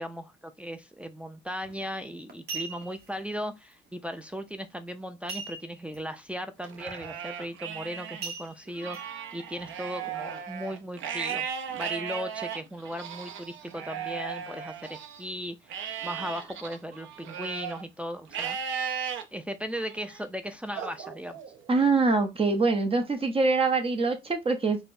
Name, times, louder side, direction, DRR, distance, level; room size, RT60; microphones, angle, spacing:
voice 1, 0.0-11.5 11.8-15.8 16.0-18.6 19.3-21.4, equal, 5° right, 0.4 m, -37 dB
sound 1, 1.6-1.8 2.3-3.1 5.3-6.0 6.3-6.4 6.9-7.1 8.2-9.0 9.6-9.7, right 4 dB, 55° right, 0.9 m, -38 dB
Livestock farm animals working animals, 6.6-8.2 8.7-15.2 15.7-17.8 18.3-19.2 19.8-20.2 20.7-21.8, right 8 dB, 75° right, 0.6 m, -36 dB
voice 2, 21.7-24.8, right 3 dB, 30° right, 0.8 m, -24 dB
4.4 x 2.1 x 2.5 m
cardioid pair, 90°, 20 cm